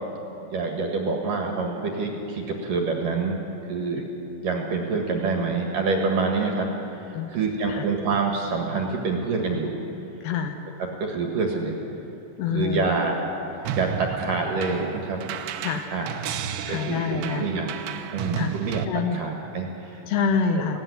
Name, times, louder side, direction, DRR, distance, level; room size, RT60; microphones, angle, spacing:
voice 1, 0.4-3.4 3.7-4.0 4.4-6.7 7.3-9.8 11.0-11.7 12.5-13.3 13.7-15.2 15.9-16.1 16.7-17.8 18.1-18.9 19.1-20.0, right 4 dB, 60° right, 1 dB, 2.7 m, -26 dB
voice 2, 10.2-10.5 12.4-12.9 15.6-15.9 16.7-17.6 18.4-18.5 18.9-19.2 20.1-20.8, left 6 dB, 75° left, 6 dB, 2.7 m, -26 dB
sound 1, 13.7-18.9, right 9 dB, 80° right, 2.6 m, -33 dB
16.5 x 16.5 x 9.8 m, 2.9 s
omnidirectional pair, 5.3 m